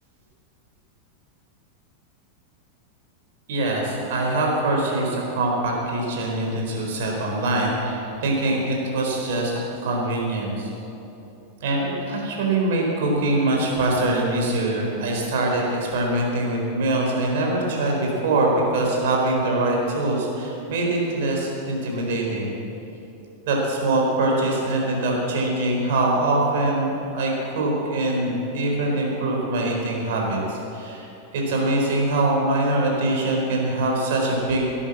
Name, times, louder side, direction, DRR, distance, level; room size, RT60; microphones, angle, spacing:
voice 1, 3.5-9.5 9.8-10.7 11.6-22.5 23.5-31.1 31.3-34.7, right 2 dB, 55° right, -1 dB, 4.3 m, -23 dB
18.5 x 9.9 x 7.3 m, 2.9 s
figure-of-eight pair, 90°, 0 cm